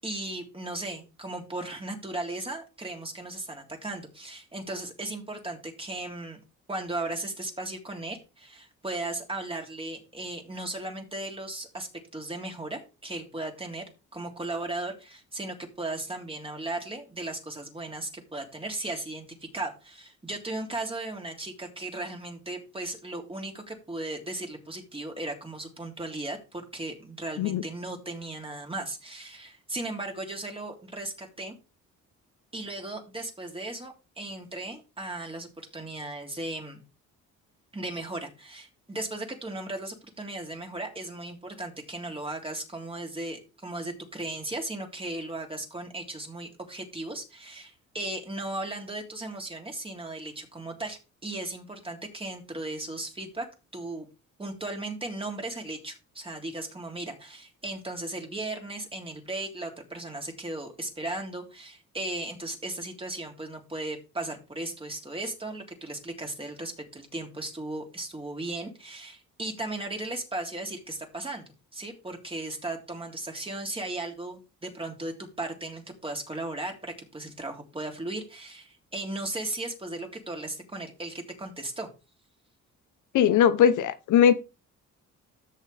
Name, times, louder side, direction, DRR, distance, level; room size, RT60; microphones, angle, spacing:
voice 1, 0.0-6.4 6.7-13.8 14.1-19.3 19.5-31.5 32.5-36.8 37.7-53.5 53.7-54.1 54.4-81.9, right 2 dB, 20° right, 3.3 m, -36 dB
voice 2, 83.1-84.3, left 9 dB, 80° left, 1.0 m, -20 dB
13.5 x 6.6 x 3.5 m
cardioid pair, 90°, 30 cm